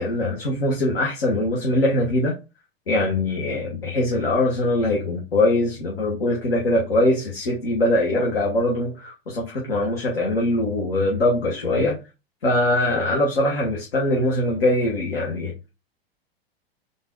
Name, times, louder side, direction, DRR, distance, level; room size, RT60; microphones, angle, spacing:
voice 1, 0.0-2.3 2.9-12.0 12.4-15.5, left 1 dB, 70° left, 1.3 m, -22 dB
3.9 x 2.6 x 3.8 m
figure-of-eight pair, 95°, 31 cm